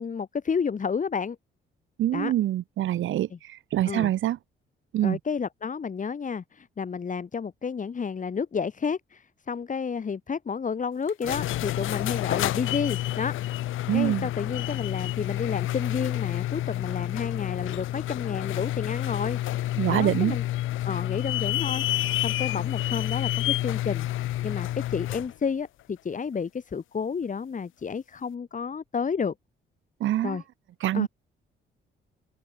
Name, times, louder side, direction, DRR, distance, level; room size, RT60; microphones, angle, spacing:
voice 1, 0.0-1.4 2.1-2.3 3.3-3.4 3.9-4.1 5.0-13.4 13.9-20.4 20.9-29.3 30.2-30.4 30.9-31.1, left 6 dB, 40° left, 4.2 m, -31 dB
voice 2, 2.0-4.4 4.9-5.2 13.9-14.3 19.8-20.4 30.0-30.4 30.8-31.1, right 13 dB, 80° right, 3.0 m, -25 dB
sound 1, 11.1-25.3, left 15 dB, 85° left, 1.6 m, -29 dB
open air
cardioid pair, 90°, 20 cm